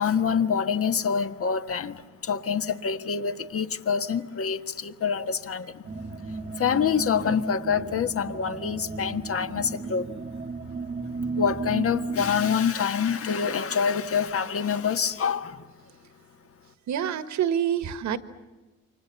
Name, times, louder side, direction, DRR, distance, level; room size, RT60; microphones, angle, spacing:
voice 1, 0.0-5.8 6.5-10.1 11.4-15.7, left 7 dB, 50° left, 1.5 m, -26 dB
sound 1, 5.8-12.6, right 4 dB, 30° right, 1.1 m, -34 dB
voice 2, 16.9-18.2, right 9 dB, 70° right, 1.6 m, -27 dB
29.0 x 25.5 x 7.1 m
cardioid pair, 90°, 30 cm